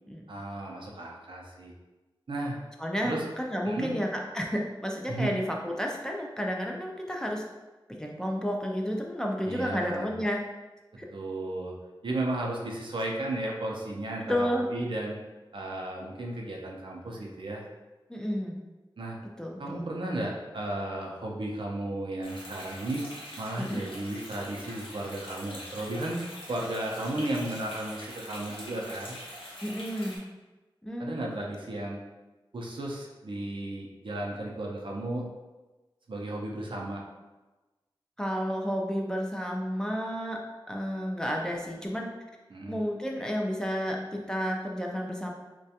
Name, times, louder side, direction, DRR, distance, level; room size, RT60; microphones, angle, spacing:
voice 1, 0.3-1.7 2.3-2.6 3.0-3.2 3.7-3.9 5.1-5.3 9.5-10.1 11.1-11.7 12.0-15.2 15.5-17.6 19.0-19.2 19.6-23.0 23.4-26.2 26.5-29.2 31.0-32.0 32.5-35.3 36.1-37.0 42.5-42.8, right 1 dB, 65° right, -1 dB, 0.5 m, -34 dB
voice 2, 2.8-7.4 8.0-10.4 11.0-11.1 14.3-14.7 18.1-18.5 19.4-19.8 23.6-23.8 29.6-30.2 30.8-31.2 38.2-40.4 40.7-42.1 42.7-45.3, equal, 5° left, 0 dB, 0.4 m, -31 dB
sound 1, 22.2-30.2, equal, 80° left, 0.7 m, -44 dB
2.3 x 2.2 x 2.7 m, 1.1 s
cardioid pair, 45°, 9 cm